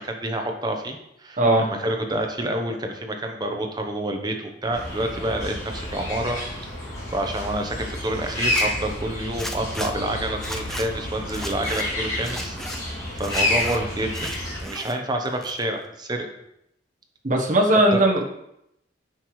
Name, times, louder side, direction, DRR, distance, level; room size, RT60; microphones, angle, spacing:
voice 1, 0.0-6.4 7.1-12.9 13.1-14.3 14.6-16.3 17.9-18.0, right 1 dB, 20° right, 3 dB, 0.8 m, -28 dB
voice 2, 1.4-1.7 17.2-18.2, right 1 dB, 40° right, -1 dB, 1.1 m, -18 dB
sound 1, 4.7-14.6, left 1 dB, 20° left, 2.8 m, -29 dB
Zipper (clothing), 8.4-8.6 9.4-9.9 10.4-10.9 11.3-11.8 12.2-12.8 13.2-13.8 14.1-14.9 15.2-15.9, equal, ahead, 0.4 m, -35 dB
9.7 x 6.1 x 3.1 m, 0.81 s
head